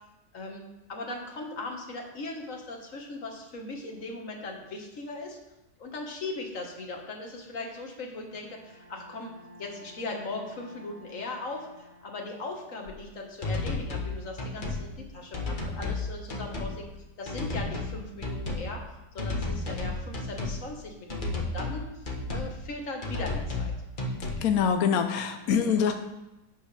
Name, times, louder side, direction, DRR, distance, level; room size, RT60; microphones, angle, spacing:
voice 1, 0.3-5.4 5.8-16.9 17.2-18.8 19.1-21.8 22.3-23.7 25.5-25.8, left 2 dB, 50° left, 1 dB, 1.9 m, -39 dB
Bowed string instrument, 8.3-12.8, equal, 30° right, 4.5 m, -53 dB
sound 1, 12.9-13.0 13.4-14.1 14.4-14.8 15.3-16.0 16.3-16.7 17.3-17.9 18.2-18.7 19.2-20.6 21.1-21.8 22.0-22.5 23.0-23.7 24.0-24.4, left 2 dB, 30° left, 1.4 m, -32 dB
voice 2, 24.4-25.9, left 7 dB, 65° left, 6 dB, 1.0 m, -24 dB
12.0 x 7.9 x 3.4 m, 0.97 s
omnidirectional pair, 1.9 m